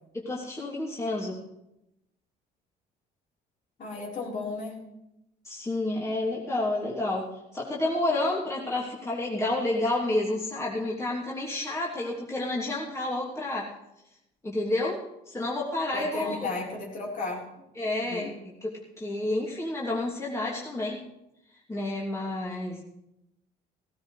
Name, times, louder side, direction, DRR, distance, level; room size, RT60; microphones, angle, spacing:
voice 1, 0.1-1.4 5.4-7.2 7.5-13.7 14.4-15.0 15.3-16.5 17.8-21.0 21.7-22.8, left 2 dB, 15° left, -5 dB, 3.0 m, -30 dB
voice 2, 3.8-4.8 15.9-17.6 18.0-18.3, left 3 dB, 50° left, -3 dB, 4.4 m, -34 dB
16.5 x 15.5 x 3.3 m, 0.86 s
cardioid pair, 110°, 17 cm